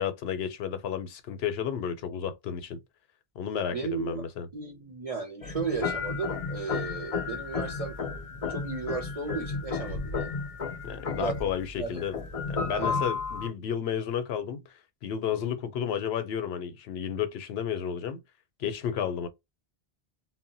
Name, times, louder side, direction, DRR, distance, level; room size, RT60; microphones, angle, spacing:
voice 1, 0.0-2.8 3.4-4.5 10.8-12.2 12.5-14.6 15.0-18.2 18.6-19.3, left 8 dB, 85° left, 0.9 m, -32 dB
voice 2, 3.7-8.0 8.5-10.4 11.2-12.0 12.8-13.0, right 5 dB, 45° right, 0.5 m, -35 dB
sound 1, 5.4-13.5, left 5 dB, 50° left, 0.5 m, -33 dB
2.2 x 2.1 x 3.8 m
omnidirectional pair, 1.0 m